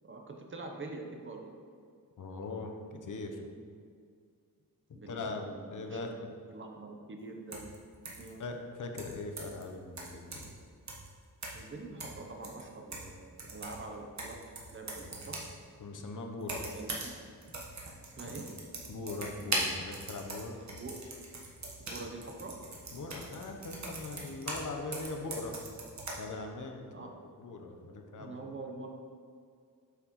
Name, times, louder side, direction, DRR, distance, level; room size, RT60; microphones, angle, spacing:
voice 1, 0.0-1.4 4.9-7.8 8.2-8.4 11.5-14.4 14.7-15.4 16.7-17.1 18.1-18.5 20.7-20.9 21.8-22.5 26.9-27.1 28.2-28.9, right 3 dB, 35° right, 2 dB, 0.7 m, -45 dB
voice 2, 2.2-3.5 4.9-6.3 8.4-10.5 15.8-16.7 18.2-18.3 18.9-20.6 22.9-25.6 26.2-27.1 27.4-28.4, left 3 dB, 60° left, 4 dB, 0.8 m, -41 dB
sound 1, 7.5-7.8 8.0-8.3 9.0-9.6 10.0-10.6 10.9-11.1 11.4-11.7 12.0-13.1 13.4-15.5 16.4-17.1 17.4-24.7 24.9-26.1, right 2 dB, 50° right, 1.2 m, -40 dB
8.1 x 5.8 x 3.0 m, 2.2 s
wide cardioid pair, 150°, 35 cm